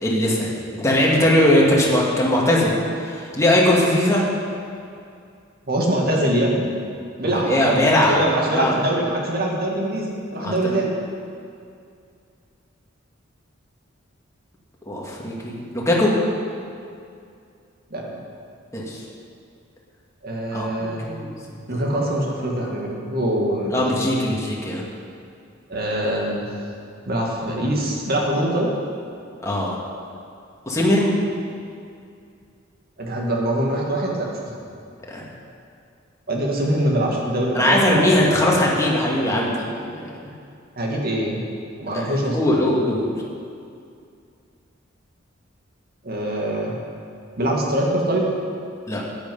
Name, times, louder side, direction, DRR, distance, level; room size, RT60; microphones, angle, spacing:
voice 1, 0.0-2.7 3.0-4.3 7.2-8.2 8.5-8.8 10.4-10.8 14.9-16.1 18.7-19.0 20.5-21.8 23.7-24.8 29.4-29.8 30.7-31.1 35.1-35.3 37.5-39.7 40.2-40.3 41.9-43.1 48.9-49.0, left 1 dB, 15° left, -4 dB, 1.9 m, -20 dB
voice 2, 5.7-6.7 7.2-10.9 17.9-18.2 20.2-21.1 21.7-24.0 25.7-26.5 27.1-28.7 30.8-30.9 33.0-34.6 36.3-38.7 40.8-41.4 41.8-42.4 46.0-46.8 47.4-48.3, right 1 dB, 50° right, -1 dB, 2.2 m, -23 dB
13.0 x 9.3 x 5.5 m, 2.4 s
head